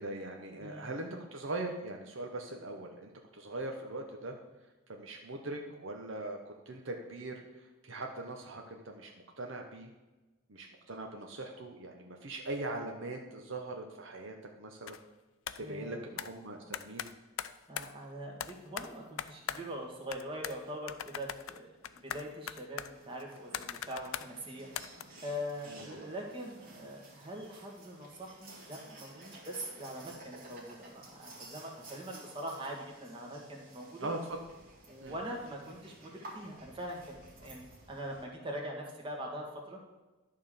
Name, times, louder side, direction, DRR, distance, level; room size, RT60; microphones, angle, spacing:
voice 1, 0.0-4.4 4.9-9.9 10.5-15.0 15.6-17.1 25.7-26.0 34.0-34.2 35.0-35.2, right 2 dB, 70° right, 2 dB, 0.9 m, -41 dB
voice 2, 0.6-0.9 15.6-16.0 17.7-34.1 34.9-40.0, equal, 25° right, 0 dB, 1.6 m, -43 dB
sound 1, 14.9-15.0 15.5-15.7 16.2-16.3 16.7-17.9 18.4-19.8 20.1-20.6 20.9-24.3 24.8-25.0, left 9 dB, 90° left, 0.4 m, -40 dB
sound 2, 22.9-38.2, right 2 dB, 45° right, 1.8 m, -54 dB
11.0 x 3.8 x 6.6 m, 1.1 s
head